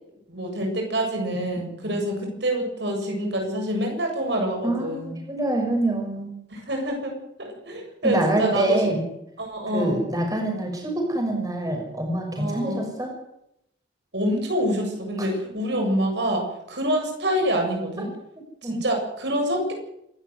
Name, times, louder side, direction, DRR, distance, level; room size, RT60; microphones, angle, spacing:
voice 1, 0.3-5.1 6.5-7.1 7.7-8.7 9.4-10.0 12.4-12.9 14.1-16.4 16.7-18.1 18.6-19.7, equal, 70° right, 2 dB, 7.6 m, -26 dB
voice 2, 4.6-6.3 8.0-9.1 9.7-13.1 15.2-15.3 18.6-18.8, right 1 dB, 20° right, 1 dB, 6.0 m, -26 dB
27.0 x 13.0 x 9.5 m, 0.80 s
head